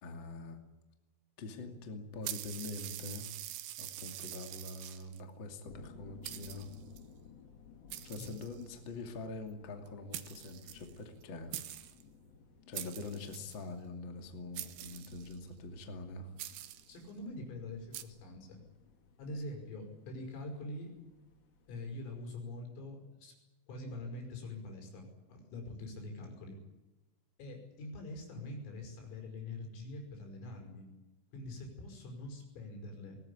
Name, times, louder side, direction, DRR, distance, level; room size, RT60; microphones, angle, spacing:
voice 1, 0.0-0.6 1.4-3.3 3.8-6.7 8.0-11.6 12.7-16.3, left 3 dB, 35° left, 5 dB, 2.2 m, -44 dB
sound 1, 2.2-5.2 5.9-6.0 6.2-7.0 7.9-8.9 9.9-10.0 10.1-11.2 11.5-12.0 12.7-13.6 14.5-15.4 16.4-17.0 17.9-18.0, right 13 dB, 70° right, 2.5 m, -44 dB
Genova-Lunedi'notte, 5.6-22.3, left 6 dB, 55° left, 1.8 m, -59 dB
voice 2, 16.9-18.6 19.2-20.9 21.7-23.3 23.7-26.6 27.4-30.9 31.3-33.2, left 2 dB, 80° left, 3 dB, 8.2 m, -44 dB
21.5 x 18.5 x 10.0 m, 1.1 s
omnidirectional pair, 5.9 m